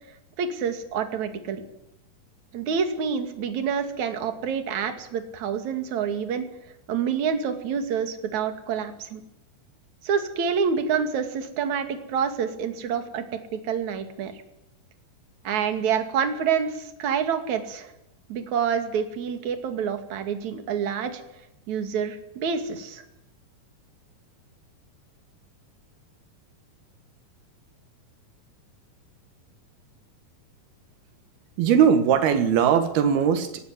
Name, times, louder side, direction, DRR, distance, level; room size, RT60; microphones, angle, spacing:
voice 1, 0.4-1.6 2.5-6.4 6.9-9.2 10.0-13.2 13.5-14.3 15.4-17.9 18.3-21.2 21.7-23.0, right 7 dB, 50° right, 7 dB, 3.4 m, -27 dB
voice 2, 31.6-33.7, right 8 dB, 80° right, 9 dB, 3.4 m, -20 dB
20.0 x 17.0 x 10.0 m, 0.84 s
omnidirectional pair, 4.4 m